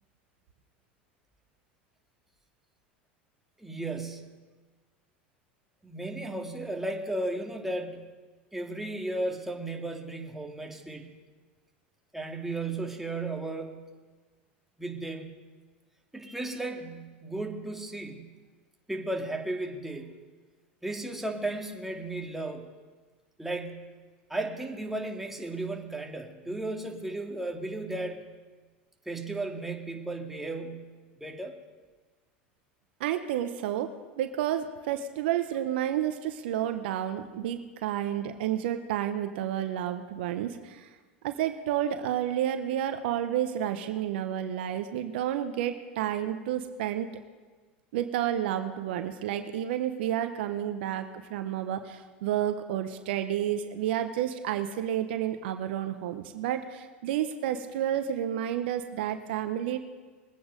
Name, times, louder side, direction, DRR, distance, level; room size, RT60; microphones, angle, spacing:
voice 1, 3.6-4.4 5.8-8.1 8.5-11.2 12.1-13.9 14.8-15.4 16.1-18.3 18.9-20.2 20.8-22.7 23.4-23.9 24.3-28.3 29.1-30.9 31.2-31.6, right 2 dB, 5° right, 1 dB, 2.1 m, -35 dB
voice 2, 33.0-40.9 41.2-47.1 47.9-59.8, right 11 dB, 70° right, 9 dB, 0.9 m, -30 dB
21.5 x 8.7 x 5.2 m, 1.4 s
hypercardioid pair, 90°, 6 cm